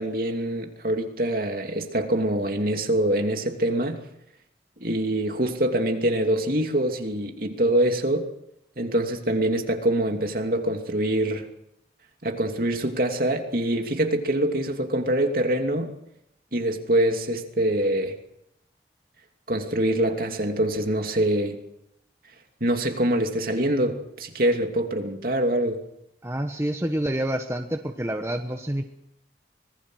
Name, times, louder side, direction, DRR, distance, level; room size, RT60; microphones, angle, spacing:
voice 1, 0.0-4.0 4.8-8.3 8.8-11.4 12.2-15.9 16.5-18.2 19.5-21.6 22.6-25.8, right 1 dB, 50° right, 4 dB, 2.8 m, -24 dB
voice 2, 26.2-28.8, right 1 dB, 15° right, 5 dB, 1.1 m, -28 dB
25.0 x 20.5 x 6.4 m, 0.82 s
head